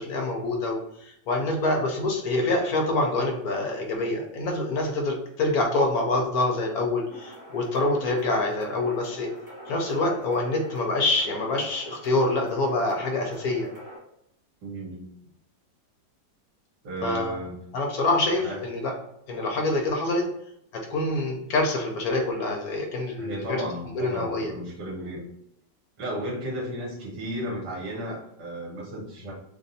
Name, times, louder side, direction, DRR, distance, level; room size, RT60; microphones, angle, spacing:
voice 1, 0.0-9.3 9.7-13.7 17.0-17.4 17.7-18.9 19.3-20.3 20.7-23.6 23.9-24.5, left 2 dB, 65° left, 1 dB, 1.1 m, -26 dB
sound 1, 7.1-14.0, equal, 20° right, 0.5 m, -45 dB
voice 2, 14.6-15.1 16.8-17.6 18.4-18.6 23.2-25.3 26.0-29.3, right 1 dB, 60° right, -3 dB, 1.9 m, -34 dB
3.3 x 2.6 x 4.0 m, 0.78 s
omnidirectional pair, 2.0 m